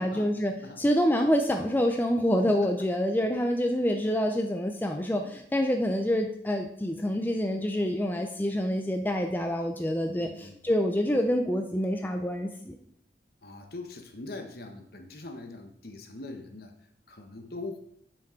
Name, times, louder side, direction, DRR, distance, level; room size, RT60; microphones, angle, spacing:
voice 1, 0.0-12.8, equal, 10° left, 4 dB, 0.5 m, -27 dB
voice 2, 10.2-10.7 13.4-16.7 17.1-17.8, left 2 dB, 55° left, 5 dB, 1.1 m, -42 dB
7.3 x 6.3 x 4.5 m, 0.70 s
head